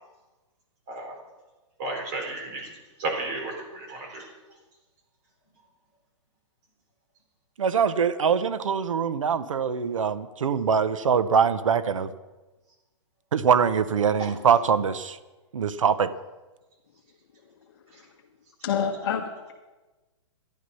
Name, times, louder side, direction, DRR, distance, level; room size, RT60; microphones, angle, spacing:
voice 1, 1.8-2.7 3.0-4.3 14.2-14.3, right 2 dB, 35° right, 2 dB, 3.9 m, -33 dB
voice 2, 7.6-12.1 13.3-15.2 15.5-16.1, right 7 dB, 85° right, 14 dB, 0.9 m, -23 dB
voice 3, 18.6-19.5, left 7 dB, 50° left, 0 dB, 1.6 m, -28 dB
13.0 x 11.5 x 5.7 m, 1.2 s
hypercardioid pair, 165°, 16 cm